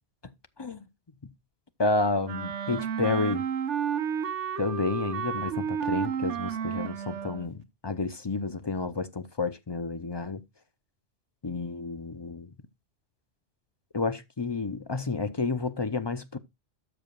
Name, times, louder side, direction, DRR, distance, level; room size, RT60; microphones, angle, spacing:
voice 1, 1.8-3.4 4.6-10.4 11.4-12.5 13.9-16.4, left 3 dB, 35° left, 0.4 m, -30 dB
Wind instrument woodwind instrument, 2.2-7.5, right 8 dB, 75° right, 1.2 m, -31 dB
12.5 x 7.0 x 2.3 m
omnidirectional pair, 1.2 m